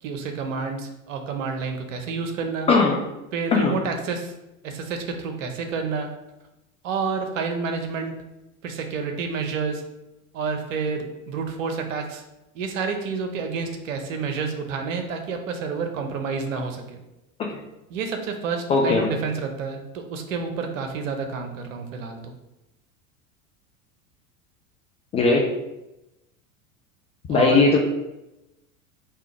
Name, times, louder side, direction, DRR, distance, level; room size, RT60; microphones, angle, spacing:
voice 1, 0.0-2.7 3.3-4.3 4.6-6.1 6.8-8.2 8.6-9.8 10.3-12.2 12.5-17.0 17.9-22.3 27.3-27.6, right 5 dB, 60° right, 4 dB, 0.9 m, -29 dB
voice 2, 18.7-19.1 25.1-25.4 27.3-27.8, left 4 dB, 15° left, -1 dB, 0.3 m, -18 dB
3.7 x 2.9 x 4.7 m, 0.94 s
figure-of-eight pair, 80°, 42 cm